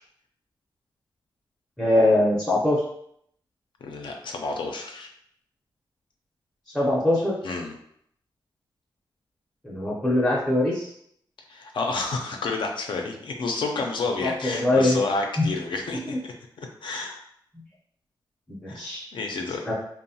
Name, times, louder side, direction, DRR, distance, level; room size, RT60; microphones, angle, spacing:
voice 1, 1.8-2.8 6.7-7.4 9.6-10.9 14.2-15.0 15.4-15.5 18.6-19.0 19.7-19.8, left 1 dB, 5° left, -6 dB, 0.5 m, -22 dB
voice 2, 3.8-5.1 7.4-7.7 11.5-17.2 18.7-18.8 19.1-19.6, left 3 dB, 65° left, 2 dB, 0.4 m, -30 dB
3.0 x 2.0 x 2.7 m, 0.70 s
wide cardioid pair, 135°, 9 cm